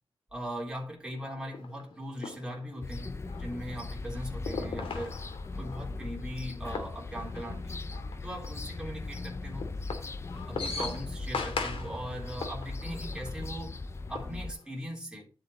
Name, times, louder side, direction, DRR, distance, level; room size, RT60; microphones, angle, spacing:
voice 1, 0.3-5.2 5.6-7.8 8.2-9.7 10.5-13.8 14.1-15.3, equal, 10° right, 3.7 m, -39 dB
sound 1, 1.2-14.8, left 4 dB, 85° left, 2.8 m, -41 dB
sound 2, 2.8-14.5, left 3 dB, 30° left, 0.6 m, -39 dB
12.0 x 7.4 x 3.1 m
wide cardioid pair, 170°, 9 cm